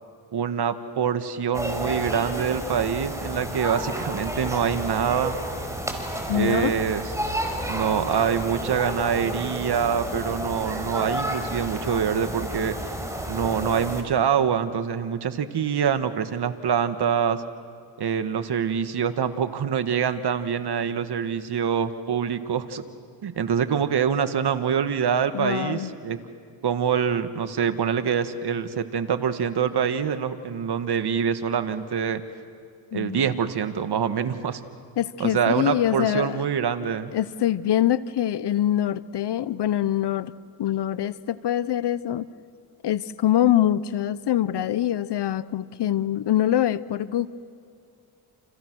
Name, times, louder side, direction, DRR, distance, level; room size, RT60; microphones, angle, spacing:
voice 1, 0.3-5.4 6.3-7.0 7.7-12.8 13.3-17.4 18.0-22.8 23.2-26.2 26.6-32.2 32.9-34.6 35.2-37.1, right 7 dB, 55° right, 9 dB, 1.9 m, -25 dB
sound 1, 1.5-14.0, equal, 5° right, 5.3 m, -31 dB
voice 2, 6.3-6.7 25.3-25.9 32.9-33.3 35.0-36.4 36.8-40.3 40.6-42.3 42.8-47.3, left 11 dB, 55° left, 17 dB, 0.9 m, -24 dB
29.5 x 28.5 x 6.3 m, 2.4 s
supercardioid pair, 70°, 48 cm